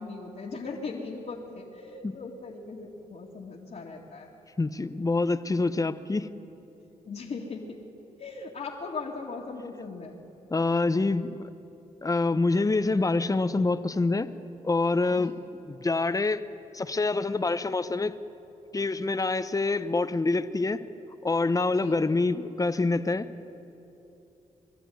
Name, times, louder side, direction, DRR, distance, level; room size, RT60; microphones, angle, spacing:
voice 1, 0.0-4.3 7.0-7.8 8.2-10.1 15.1-15.4 21.7-22.0, left 4 dB, 55° left, -4 dB, 2.4 m, -39 dB
voice 2, 4.6-6.3 10.5-11.4 12.0-14.3 14.6-15.3 15.7-16.4 16.7-18.1 18.7-20.8 21.2-23.3, left 3 dB, 25° left, 12 dB, 0.9 m, -26 dB
23.0 x 12.5 x 9.5 m, 2.9 s
supercardioid pair, 60°, 15 cm